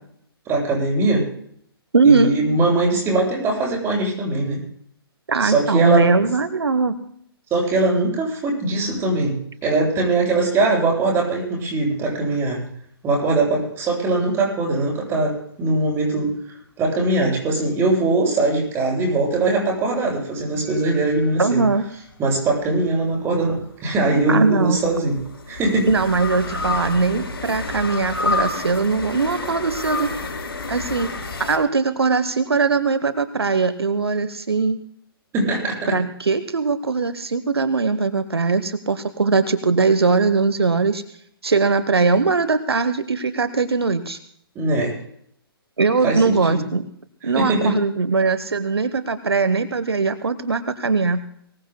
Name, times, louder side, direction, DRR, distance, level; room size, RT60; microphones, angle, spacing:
voice 1, 0.5-1.3 2.0-4.6 5.4-6.1 7.5-9.4 9.6-12.6 13.0-16.3 16.8-21.6 22.2-25.2 25.5-25.9 35.3-35.9 44.5-45.0 46.0-46.6 47.2-47.7, right 2 dB, 20° right, -2 dB, 7.9 m, -21 dB
voice 2, 1.9-2.3 5.3-7.0 21.4-21.8 24.3-24.8 25.9-30.1 30.7-31.1 31.4-34.8 35.9-41.0 41.4-44.2 45.8-46.9 47.2-51.2, right 4 dB, 80° right, 13 dB, 1.0 m, -20 dB
sound 1, 20.7-22.2 24.0-31.6, left 3 dB, 70° left, 5.7 m, -29 dB
24.0 x 20.0 x 2.2 m, 0.67 s
figure-of-eight pair, 125°, 13 cm